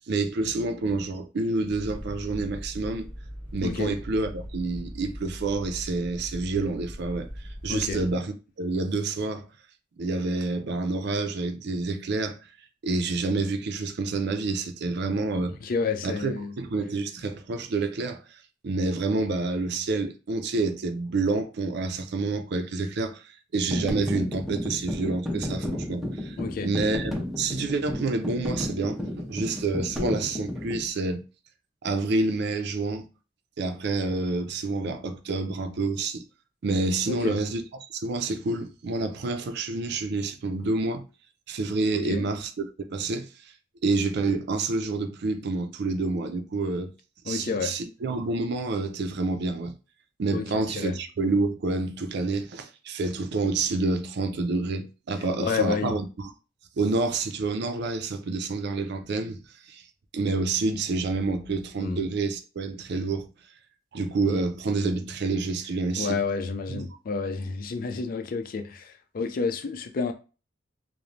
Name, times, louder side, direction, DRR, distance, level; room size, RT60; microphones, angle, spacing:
voice 1, 0.1-3.1 3.5-9.4 10.0-12.4 12.8-15.6 16.0-26.4 26.6-31.3 31.8-33.1 33.6-36.2 36.6-41.0 41.5-43.3 43.8-46.9 47.3-49.7 50.2-56.3 56.8-59.4 59.7-59.8 60.1-63.3 63.9-66.2 66.7-66.8, right 3 dB, 60° right, 0.4 m, -28 dB
sound 1, 1.7-8.1, equal, 30° left, 1.3 m, -40 dB
voice 2, 3.6-3.9 7.7-8.0 15.6-16.5 26.4-26.7 37.1-37.4 41.9-42.2 47.3-47.7 50.3-51.0 55.4-55.9 61.8-62.0 66.0-70.1, left 4 dB, 45° left, 0.4 m, -30 dB
sound 2, 23.5-30.9, left 1 dB, ahead, 0.5 m, -33 dB
3.0 x 2.1 x 2.5 m
head